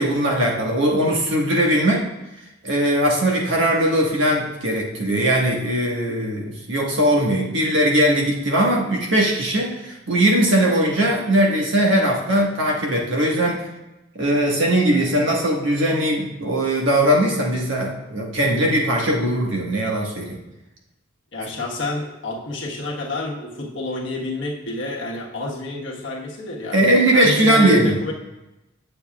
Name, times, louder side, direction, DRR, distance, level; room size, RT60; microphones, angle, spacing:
voice 1, 0.0-2.1 2.6-13.6 14.1-20.4 26.7-27.9, right 1 dB, 70° right, -1 dB, 1.5 m, -19 dB
voice 2, 21.3-26.8 27.1-28.1, left 2 dB, 65° left, -3 dB, 1.3 m, -29 dB
8.9 x 6.8 x 2.3 m, 0.99 s
head